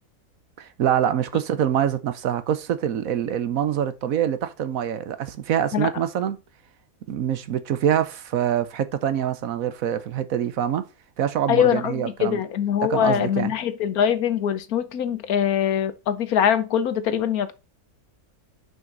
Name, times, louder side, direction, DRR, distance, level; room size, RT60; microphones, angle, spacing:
voice 1, 0.6-6.4 7.1-10.8 11.2-12.4 12.8-13.5, right 9 dB, 70° right, 1.2 m, -25 dB
voice 2, 11.5-17.5, left 9 dB, 75° left, 1.4 m, -23 dB
9.3 x 5.6 x 3.9 m
omnidirectional pair, 1.6 m